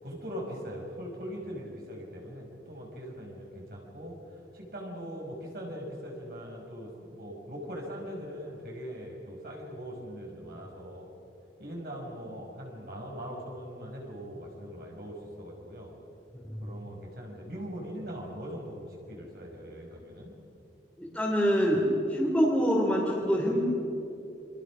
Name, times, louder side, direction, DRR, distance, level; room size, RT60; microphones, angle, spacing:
voice 1, 0.0-11.1 11.6-16.0 16.6-20.3, equal, 55° right, -1 dB, 5.5 m, -41 dB
voice 2, 21.0-21.8 22.1-23.6, equal, 5° left, -5 dB, 3.0 m, -25 dB
29.0 x 24.5 x 6.3 m, 3.0 s
head